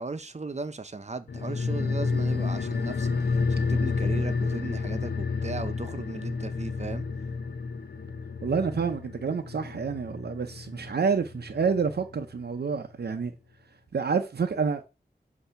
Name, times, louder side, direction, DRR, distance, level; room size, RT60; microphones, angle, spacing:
voice 1, 0.0-7.1, right 3 dB, 45° right, 0.7 m, -37 dB
sound 1, 1.3-12.1 12.4-12.5, left 4 dB, 85° left, 0.6 m, -30 dB
voice 2, 8.4-13.3 13.9-14.9, right 5 dB, 85° right, 0.6 m, -28 dB
8.0 x 2.8 x 5.6 m
wide cardioid pair, 55°, 16 cm